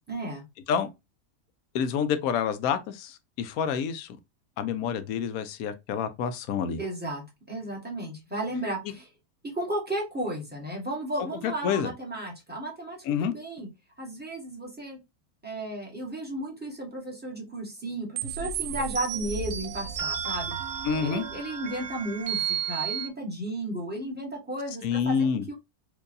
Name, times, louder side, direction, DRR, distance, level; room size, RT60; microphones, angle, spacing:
voice 1, 0.1-0.4 6.8-9.1 9.5-13.7 14.0-15.0 15.4-20.5 21.0-25.5, right 1 dB, 5° right, 1.4 m, -34 dB
voice 2, 1.7-4.2 4.6-6.8 11.4-11.9 13.1-13.3 20.8-21.2 24.8-25.5, left 7 dB, 75° left, 1.0 m, -28 dB
sound 1, 18.2-23.1, right 8 dB, 90° right, 1.2 m, -33 dB
4.6 x 2.6 x 2.6 m
omnidirectional pair, 1.5 m